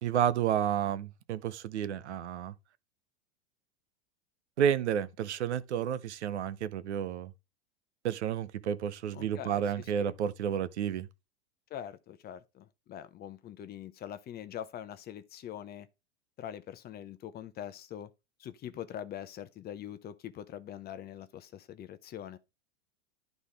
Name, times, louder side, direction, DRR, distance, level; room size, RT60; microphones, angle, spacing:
voice 1, 0.0-2.5 4.6-7.3 8.0-11.1, right 9 dB, 85° right, 0.7 m, -31 dB
voice 2, 9.1-10.1 11.7-15.9 16.4-18.1 18.4-22.4, left 10 dB, 30° left, 0.7 m, -43 dB
11.0 x 4.1 x 3.4 m
hypercardioid pair, 100°, 33 cm